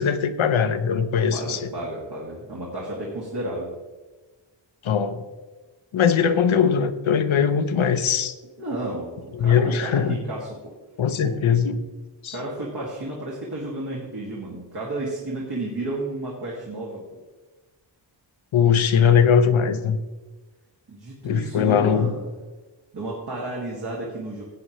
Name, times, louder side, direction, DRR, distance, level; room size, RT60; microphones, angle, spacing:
voice 1, 0.0-1.7 4.8-5.2 5.9-8.3 9.3-10.2 11.0-11.8 12.2-12.4 18.5-20.0 21.2-22.1, left 7 dB, 85° left, 11 dB, 0.9 m, -20 dB
voice 2, 1.3-3.7 8.6-10.7 11.2-11.3 12.3-17.0 20.9-22.3 22.9-24.4, right 2 dB, 55° right, -4 dB, 2.2 m, -32 dB
16.0 x 8.6 x 3.1 m, 1.2 s
wide cardioid pair, 170°, 47 cm